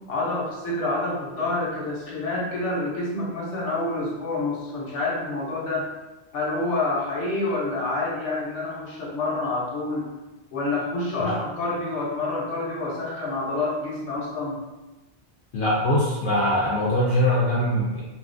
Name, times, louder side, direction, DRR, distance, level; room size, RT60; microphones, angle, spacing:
voice 1, 0.1-5.9 6.3-10.1 10.5-14.6, left 2 dB, 90° left, -4 dB, 1.1 m, -28 dB
voice 2, 15.5-18.0, left 1 dB, 65° left, -6 dB, 0.8 m, -22 dB
2.8 x 2.4 x 2.5 m, 1.1 s
omnidirectional pair, 1.2 m